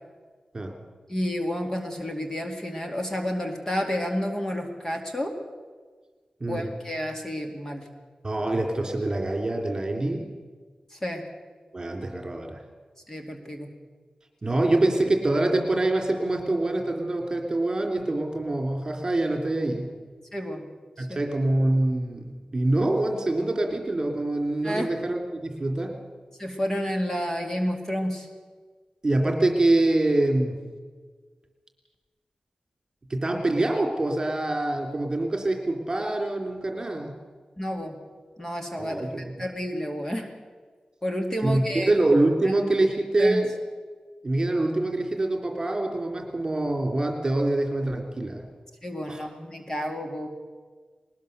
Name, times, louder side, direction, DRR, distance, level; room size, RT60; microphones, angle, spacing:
voice 1, 1.1-5.3 6.5-7.9 10.9-11.2 13.1-13.7 14.5-14.6 20.3-20.6 21.0-21.2 24.6-24.9 26.4-28.3 37.6-38.0 38.4-40.3 41.0-41.9 42.4-42.5 43.2-43.4 48.8-50.3, equal, 20° left, 3 dB, 2.4 m, -30 dB
voice 2, 8.2-10.3 11.7-12.6 14.4-19.9 21.0-22.3 22.5-26.0 29.0-30.6 33.1-37.1 38.8-39.2 41.4-43.5 44.2-48.4 49.1-49.2, right 2 dB, 30° right, 4 dB, 3.4 m, -25 dB
20.5 x 19.5 x 6.9 m, 1.5 s
wide cardioid pair, 105°, 2 cm